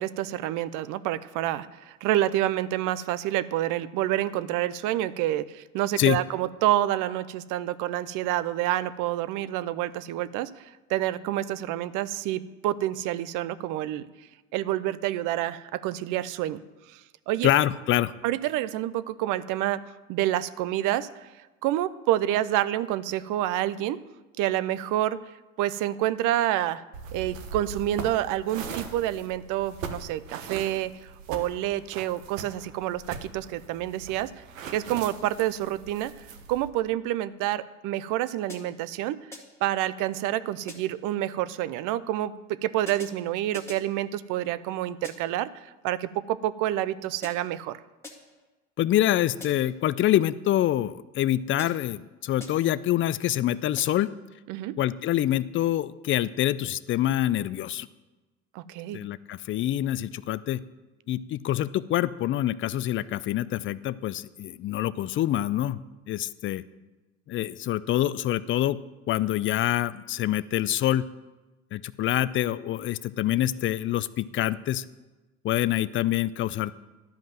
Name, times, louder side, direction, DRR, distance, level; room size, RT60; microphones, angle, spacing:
voice 1, 0.0-14.1 14.5-16.6 16.9-17.0 17.3-17.5 18.2-19.8 20.1-21.3 21.6-24.0 24.4-25.2 25.6-26.8 27.1-34.3 34.7-36.1 36.5-39.2 39.6-47.8 54.5-54.8 58.5-59.0, right 13 dB, 55° right, 16 dB, 0.6 m, -28 dB
voice 2, 17.4-18.1 48.8-54.1 54.8-57.9 58.9-60.6 61.1-65.8 66.1-66.6 67.3-68.8 69.1-71.0 71.7-74.8 75.4-76.7, left 13 dB, 35° left, 17 dB, 0.4 m, -26 dB
sound 1, 26.9-36.7, right 5 dB, 80° right, 1.2 m, -41 dB
sound 2, 38.5-38.9 39.3-39.7 40.7-41.1 42.9-44.0 45.0-45.5 47.2-47.6 48.0-48.5 49.4-49.8 51.6-52.0 52.4-52.8 53.8-54.2, left 2 dB, 5° left, 2.2 m, -46 dB
12.0 x 5.2 x 7.6 m, 1.2 s
hypercardioid pair, 75°, 39 cm